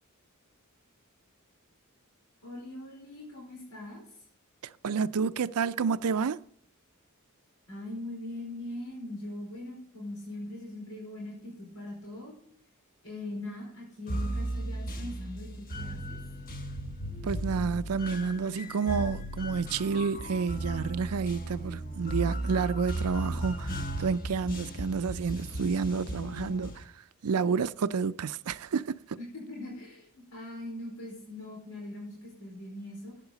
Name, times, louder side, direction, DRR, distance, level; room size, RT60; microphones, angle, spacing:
voice 1, 2.4-4.0 7.7-12.3 13.0-16.2 24.7-24.9 29.2-33.1, left 1 dB, 85° left, 4.6 m, -41 dB
voice 2, 4.6-6.4 17.2-26.9 27.2-29.2, right 5 dB, 80° right, 0.5 m, -30 dB
sound 1, 14.1-26.8, right 1 dB, 40° left, 1.2 m, -36 dB
13.0 x 9.0 x 4.0 m
head